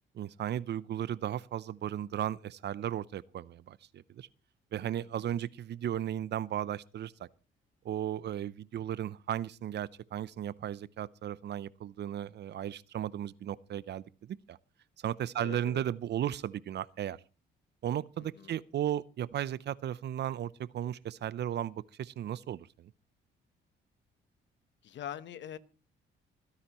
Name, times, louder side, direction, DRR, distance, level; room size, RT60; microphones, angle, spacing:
voice 1, 0.1-4.3 4.7-7.3 7.8-14.6 15.0-17.2 17.8-22.9, right 11 dB, 60° right, 0.6 m, -35 dB
voice 2, 15.4-15.8 18.2-18.5 24.8-25.6, left 10 dB, 65° left, 1.0 m, -43 dB
26.0 x 9.9 x 3.0 m
cardioid pair, 90°, 20 cm